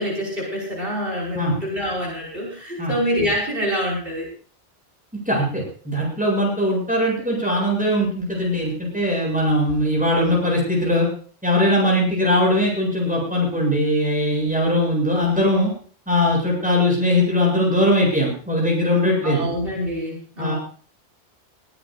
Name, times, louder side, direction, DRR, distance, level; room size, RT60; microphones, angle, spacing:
voice 1, 0.0-4.3 19.2-20.5, equal, 55° right, -3 dB, 6.1 m, -26 dB
voice 2, 5.1-11.1 11.4-15.7 16.1-19.5 20.4-20.5, left 1 dB, 5° right, -2 dB, 8.0 m, -20 dB
20.5 x 18.0 x 2.6 m, 0.44 s
omnidirectional pair, 1.1 m